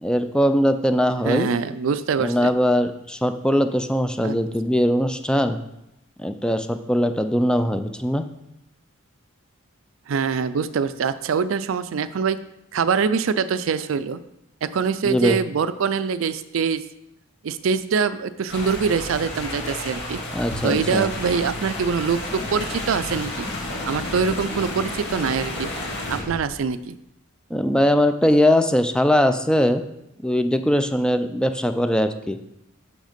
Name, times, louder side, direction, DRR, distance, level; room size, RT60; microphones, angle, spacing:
voice 1, 0.0-1.5 2.2-5.6 6.2-8.3 15.0-15.4 20.3-21.1 27.5-29.8 30.2-32.4, equal, 5° left, 9 dB, 0.3 m, -21 dB
voice 2, 1.2-2.5 4.2-4.4 10.1-12.4 12.7-14.2 14.6-16.8 17.4-20.2 20.6-23.5 23.9-25.7 26.1-27.0, right 6 dB, 70° right, 14 dB, 0.4 m, -24 dB
sound 1, 18.5-26.2, left 1 dB, 55° left, 2.1 m, -32 dB
Car, 20.3-26.9, left 1 dB, 40° left, 1.1 m, -38 dB
6.4 x 5.9 x 5.1 m, 0.85 s
head